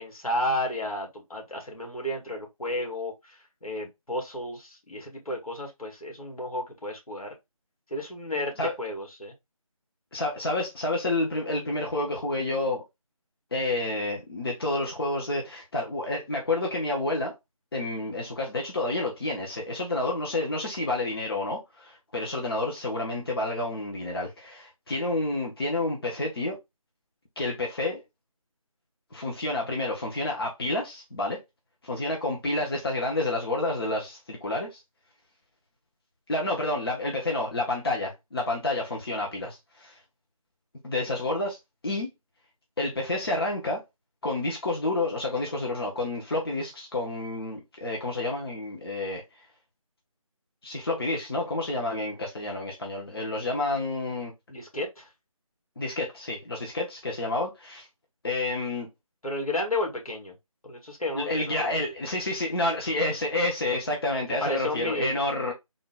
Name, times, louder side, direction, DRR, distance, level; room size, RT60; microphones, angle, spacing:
voice 1, 0.0-7.3 7.9-9.3 54.5-55.1 59.2-60.3 60.6-61.8 64.4-65.2, left 1 dB, 80° left, 1.9 m, -32 dB
voice 2, 10.1-12.8 13.5-17.3 17.7-26.6 27.4-28.0 29.1-31.4 31.8-34.8 36.3-40.0 40.8-41.6 41.8-42.1 42.8-43.8 44.2-49.2 50.6-54.3 55.8-57.9 58.2-58.9 61.1-65.5, left 2 dB, 40° left, 0.9 m, -29 dB
3.7 x 2.2 x 3.8 m
figure-of-eight pair, 165°, 18 cm